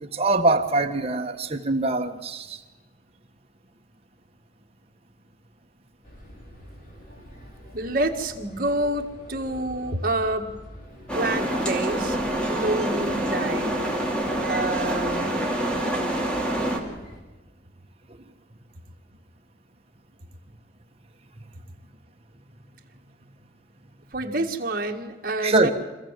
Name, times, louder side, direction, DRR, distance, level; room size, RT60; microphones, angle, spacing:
voice 1, 0.0-2.6 25.4-25.7, right 2 dB, 35° right, 5 dB, 1.4 m, -23 dB
sound 1, 6.0-17.2, equal, 50° left, 4.4 m, -45 dB
voice 2, 7.7-10.5 11.1-13.8 14.4-15.3 24.1-25.7, right 2 dB, 55° right, 3 dB, 1.9 m, -28 dB
sound 2, 11.1-16.8, right 1 dB, 5° left, 2.9 m, -26 dB
25.5 x 15.5 x 7.6 m, 1.2 s
head